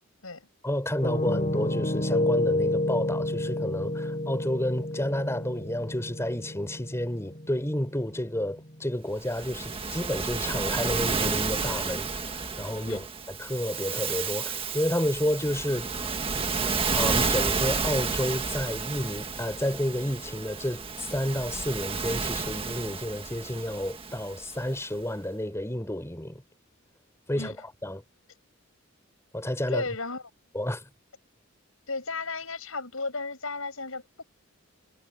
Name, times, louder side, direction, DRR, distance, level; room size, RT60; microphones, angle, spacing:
voice 1, 0.6-15.9 16.9-26.4 27.3-27.6 27.8-28.0 29.3-29.8 30.5-30.8, left 1 dB, 15° left, 4.2 m, -30 dB
Piano, 1.0-8.9, left 1 dB, 35° left, 5.0 m, -30 dB
Waves surf, 9.2-24.7, right 4 dB, 25° right, 1.6 m, -31 dB
voice 2, 29.7-30.2 31.9-34.2, left 3 dB, 70° left, 7.4 m, -34 dB
head